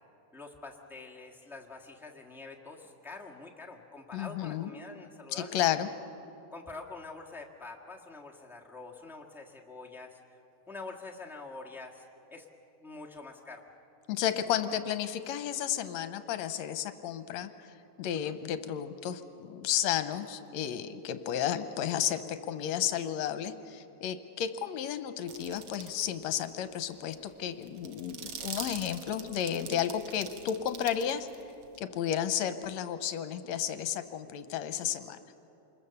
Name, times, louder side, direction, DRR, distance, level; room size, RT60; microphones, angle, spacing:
voice 1, 0.3-5.6 6.5-10.4 10.7-12.5 12.8-13.6 18.1-18.4, left 3 dB, ahead, -2 dB, 0.5 m, -46 dB
voice 2, 4.1-4.7 5.3-5.9 14.1-17.5 18.0-31.3 31.8-35.2, left 10 dB, 75° left, 10 dB, 2.0 m, -32 dB
sound 1, 25.3-26.1 26.4-26.5 26.9-31.8, right 7 dB, 55° right, 1.4 m, -43 dB
26.5 x 21.5 x 7.0 m, 2.9 s
omnidirectional pair, 3.4 m